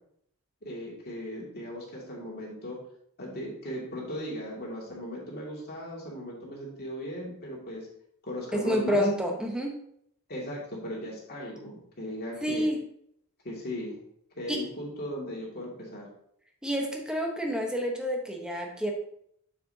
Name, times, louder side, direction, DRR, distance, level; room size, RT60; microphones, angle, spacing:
voice 1, 0.6-2.8 3.2-7.9 8.2-9.1 10.3-12.7 13.4-14.0 14.4-16.1, equal, 45° left, -3 dB, 2.3 m, -37 dB
voice 2, 8.5-9.8 12.4-12.8 14.5-14.6 16.6-18.9, equal, 5° right, 1 dB, 1.1 m, -28 dB
7.2 x 6.7 x 2.8 m, 0.69 s
head